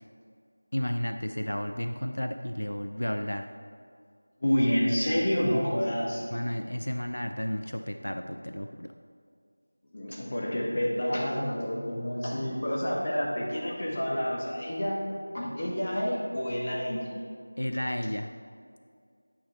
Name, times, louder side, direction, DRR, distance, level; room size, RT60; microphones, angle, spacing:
voice 1, 0.7-3.5 6.3-8.9 12.4-12.5 17.6-18.3, equal, 90° left, 6 dB, 0.3 m, -32 dB
voice 2, 4.4-6.2 9.9-15.0 15.3-17.2, equal, 35° left, -3 dB, 1.1 m, -28 dB
8.5 x 3.4 x 4.1 m, 2.2 s
figure-of-eight pair, 175°, 0 cm